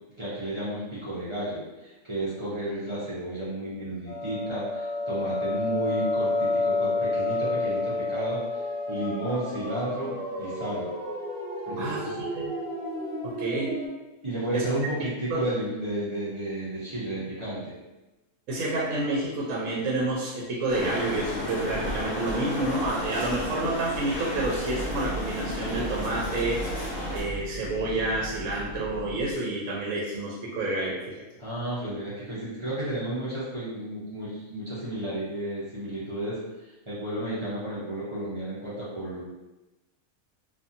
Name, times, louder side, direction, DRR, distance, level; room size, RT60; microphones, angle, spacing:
voice 1, 0.2-8.4 8.9-10.9 11.7-12.2 14.2-17.6 31.4-39.2, right 1 dB, 45° right, -10 dB, 0.4 m, -32 dB
sound 1, 4.1-13.9, left 2 dB, 10° left, 0.6 m, -30 dB
voice 2, 11.8-12.5 13.2-13.7 14.5-14.6 15.3-15.4 18.5-26.6 27.1-31.1, right 2 dB, 70° right, -4 dB, 0.9 m, -29 dB
sound 2, 20.7-27.2, left 1 dB, 50° left, 0.9 m, -33 dB
sound 3, 24.3-29.3, right 2 dB, 75° left, 1.2 m, -38 dB
2.7 x 2.5 x 2.4 m, 1.1 s
omnidirectional pair, 1.5 m